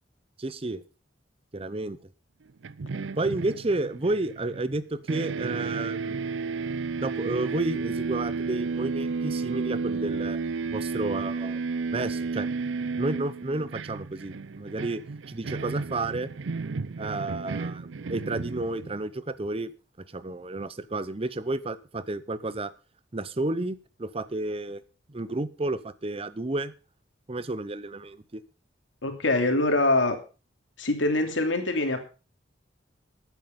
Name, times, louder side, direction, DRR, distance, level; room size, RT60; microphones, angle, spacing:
voice 1, 0.4-0.8 1.5-2.0 3.2-6.2 7.0-10.4 10.7-11.6 11.9-12.5 13.0-15.0 15.3-16.3 17.0-19.7 20.1-22.7 23.1-24.8 25.1-26.7 27.3-28.4, right 2 dB, 30° right, 16 dB, 0.8 m, -31 dB
sound 1, 2.6-4.8 5.1-19.1, right 4 dB, 80° right, 0.5 m, -32 dB
voice 2, 29.0-30.2 30.8-32.0, left 2 dB, 90° left, 6 dB, 2.8 m, -24 dB
13.5 x 9.2 x 5.3 m, 0.34 s
head